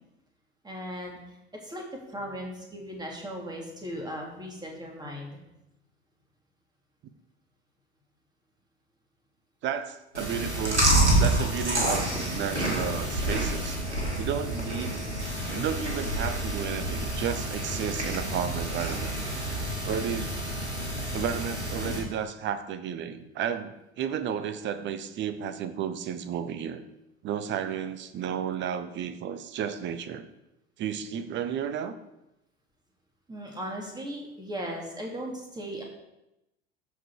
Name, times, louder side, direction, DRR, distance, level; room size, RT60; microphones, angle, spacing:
voice 1, 0.6-1.4 1.6-5.4 33.3-35.8, equal, 10° right, 0 dB, 2.7 m, -37 dB
voice 2, 9.6-10.8 11.1-13.8 14.2-15.1 15.5-19.1 19.8-20.4 21.1-26.8 27.2-30.2 30.8-32.0, right 8 dB, 35° right, 12 dB, 0.9 m, -32 dB
Chewing mastication, 10.1-22.0, right 1 dB, 85° right, 2.3 m, -28 dB
13.5 x 5.1 x 4.9 m, 0.91 s
figure-of-eight pair, 75°, 34 cm